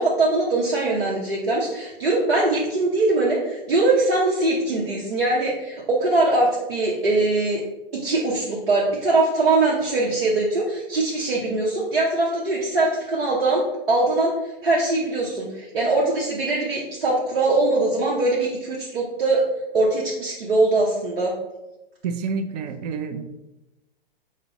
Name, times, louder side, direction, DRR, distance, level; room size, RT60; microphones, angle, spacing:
voice 1, 0.0-7.6 7.9-14.3 14.6-19.4 19.7-21.3, right 2 dB, 85° right, -4 dB, 0.9 m, -22 dB
voice 2, 22.0-23.2, right 5 dB, 45° right, 9 dB, 0.5 m, -28 dB
5.4 x 2.1 x 3.9 m, 0.99 s
hypercardioid pair, 120°, 29 cm